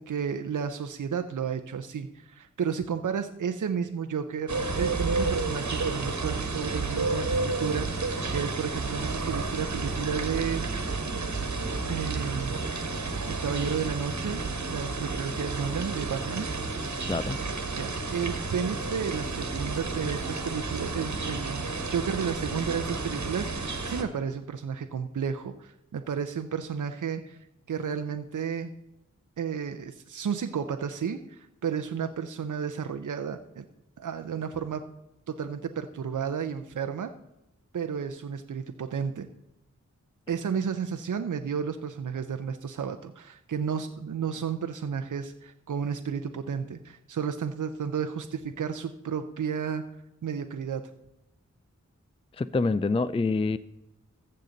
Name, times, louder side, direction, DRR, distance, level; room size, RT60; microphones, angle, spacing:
voice 1, 0.0-10.7 11.9-12.6 13.3-16.5 17.7-27.4 27.7-28.7 29.4-33.6 34.0-34.8 35.3-37.1 37.7-39.3 40.3-49.8 50.2-50.8, right 7 dB, 85° right, 7 dB, 0.6 m, -32 dB
sound 1, 4.5-24.0, right 3 dB, 65° right, 1.4 m, -31 dB
voice 2, 52.4-53.6, left 3 dB, 20° left, 15 dB, 0.3 m, -26 dB
14.5 x 6.6 x 3.9 m, 0.91 s
wide cardioid pair, 80°, 30 cm